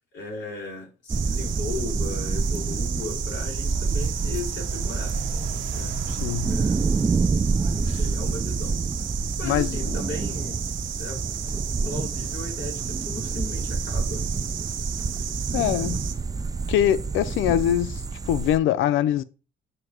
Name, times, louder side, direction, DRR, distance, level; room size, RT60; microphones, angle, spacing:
voice 1, 0.1-5.1 5.7-5.9 6.5-7.0 7.6-8.8 9.4-10.6 11.0-11.2 11.8-14.3 15.1-15.4, left 3 dB, 65° left, 3.8 m, -36 dB
sound 1, 1.1-18.6, right 4 dB, 20° right, 0.3 m, -27 dB
sound 2, 1.1-16.1, right 9 dB, 75° right, 1.0 m, -35 dB
voice 2, 6.1-6.6 7.9-8.0 9.4-10.0 15.5-16.1 16.7-19.2, left 11 dB, 90° left, 0.4 m, -24 dB
7.9 x 2.7 x 5.9 m
cardioid pair, 90°, 20 cm